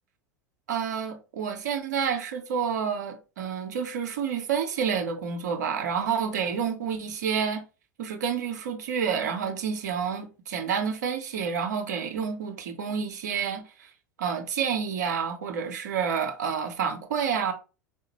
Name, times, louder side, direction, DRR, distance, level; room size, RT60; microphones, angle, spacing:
voice 1, 0.7-7.6 8.0-13.6 14.2-17.5, right 7 dB, 70° right, 0.8 m, -29 dB
4.7 x 2.1 x 3.0 m
figure-of-eight pair, 80°, 10 cm